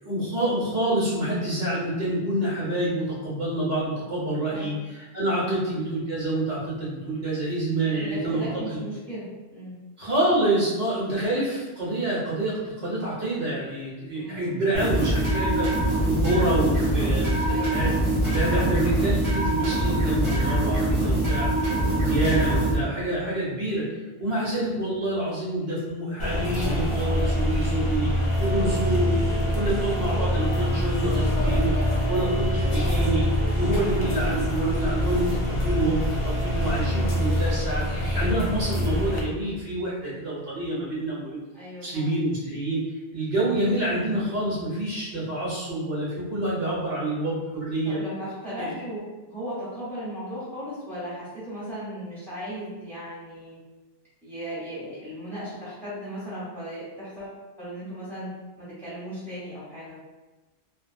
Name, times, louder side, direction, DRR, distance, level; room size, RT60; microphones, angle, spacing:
voice 1, 0.0-8.8 10.0-17.9 18.3-21.5 21.9-23.9 24.2-28.1 28.4-33.3 33.6-41.4 41.8-42.8 43.1-48.0 48.6-48.7, right 1 dB, 65° right, -7 dB, 1.1 m, -27 dB
voice 2, 7.8-9.8 14.1-14.7 17.4-18.2 41.5-42.1 47.8-49.0 49.3-53.6 54.2-60.0, equal, ahead, -10 dB, 1.0 m, -37 dB
sound 1, 14.7-22.8, right 1 dB, 30° right, 0.8 m, -23 dB
sound 2, 26.2-39.2, equal, 45° left, 0.4 m, -25 dB
2.7 x 2.2 x 2.5 m, 1.1 s
omnidirectional pair, 1.2 m